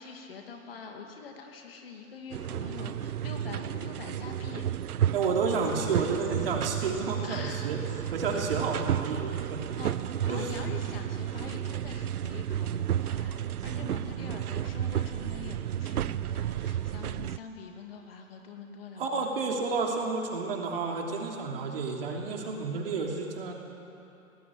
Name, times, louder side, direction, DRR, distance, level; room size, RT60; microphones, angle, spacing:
voice 1, 0.0-4.7 7.2-7.7 8.2-8.4 9.4-9.5 9.8-19.3, left 4 dB, 40° left, 3 dB, 2.6 m, -44 dB
sound 1, 2.3-17.4, right 10 dB, 85° right, 0.8 m, -32 dB
voice 2, 5.1-9.6 10.3-10.5 14.3-14.4 19.0-23.5, right 4 dB, 40° right, 1 dB, 3.1 m, -31 dB
23.0 x 19.0 x 8.7 m, 2.8 s
hypercardioid pair, 175°, 44 cm